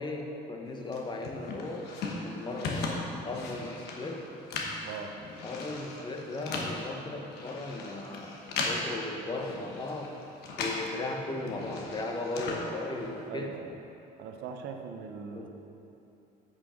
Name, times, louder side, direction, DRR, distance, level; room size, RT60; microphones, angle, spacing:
voice 1, 0.0-1.9 2.2-4.2 5.4-10.1 10.6-13.5 15.3-15.5, left 2 dB, 25° left, 2 dB, 0.9 m, -37 dB
sound 1, 0.9-10.9 11.2-13.3, left 3 dB, 75° left, 1.1 m, -38 dB
voice 2, 4.8-5.2 13.3-13.8 14.2-15.5, right 6 dB, 85° right, 4 dB, 0.7 m, -40 dB
8.3 x 5.6 x 5.0 m, 2.9 s
cardioid pair, 110°, 17 cm